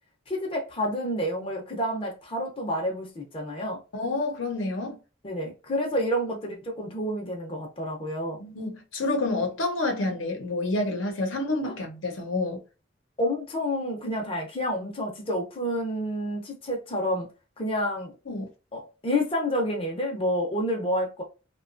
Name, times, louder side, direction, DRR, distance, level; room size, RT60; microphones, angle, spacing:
voice 1, 0.3-3.8 5.2-8.4 11.6-11.7 13.2-17.3 17.6-18.1 18.7-21.2, equal, 30° left, 0.6 m, -29 dB
voice 2, 3.9-5.0 8.4-12.6 18.3-18.5, left 2 dB, 80° left, 0.8 m, -28 dB
2.8 x 2.2 x 2.5 m
head